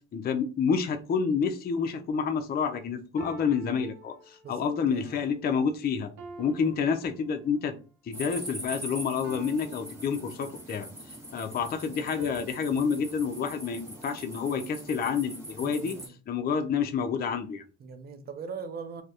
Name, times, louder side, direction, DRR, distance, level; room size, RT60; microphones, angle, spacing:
voice 1, 0.1-6.1 6.4-7.8 8.0-10.9 11.3-16.0 16.3-17.6, left 6 dB, 35° left, 0.4 m, -29 dB
sound 1, 1.7-2.0 3.2-4.8 6.2-7.8 9.2-10.9 12.2-14.6, right 1 dB, 80° right, 0.6 m, -49 dB
voice 2, 4.4-5.3 15.6-16.2 17.8-19.0, right 5 dB, 30° right, 0.4 m, -41 dB
sound 2, 8.1-16.1, right 1 dB, 10° right, 0.9 m, -42 dB
2.2 x 2.0 x 2.7 m
cardioid pair, 90°, 30 cm